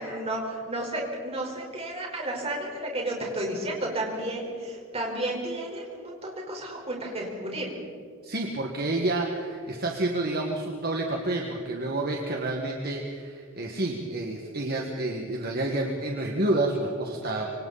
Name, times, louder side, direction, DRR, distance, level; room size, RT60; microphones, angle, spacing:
voice 1, 0.0-7.7, right 1 dB, 30° right, 0 dB, 4.8 m, -32 dB
voice 2, 8.2-17.5, right 2 dB, 50° right, 1 dB, 1.9 m, -29 dB
26.0 x 25.5 x 4.3 m, 2.4 s
head